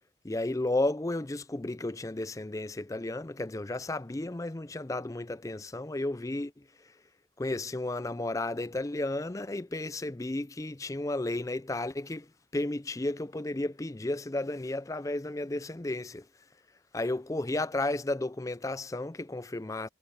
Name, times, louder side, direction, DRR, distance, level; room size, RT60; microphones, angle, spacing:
voice 1, 0.2-6.5 7.4-12.3 12.5-16.2 16.9-19.9, left 2 dB, 20° left, 0.5 m, -33 dB
head